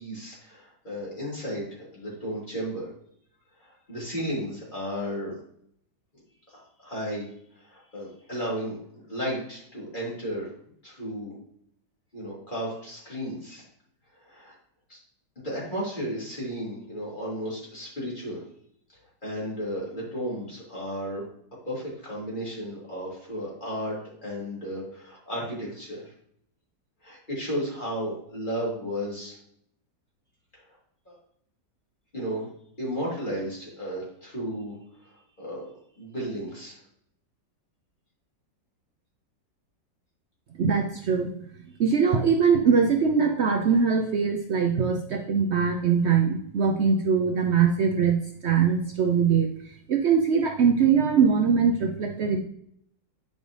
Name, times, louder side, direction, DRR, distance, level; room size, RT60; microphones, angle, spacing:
voice 1, 0.0-2.9 3.6-5.3 6.5-7.3 7.5-10.5 10.8-11.4 12.1-13.6 14.1-14.6 14.9-15.0 15.4-18.4 19.2-21.2 21.6-24.0 24.2-26.1 27.0-29.4 30.5-30.8 31.0-31.2 32.1-32.5 32.8-34.8 35.0-35.6 35.9-36.8, equal, 25° left, -6 dB, 3.2 m, -34 dB
voice 2, 40.6-41.3 41.8-52.4, right 6 dB, 85° right, 3 dB, 0.5 m, -22 dB
9.6 x 5.2 x 3.2 m, 0.68 s
omnidirectional pair, 2.0 m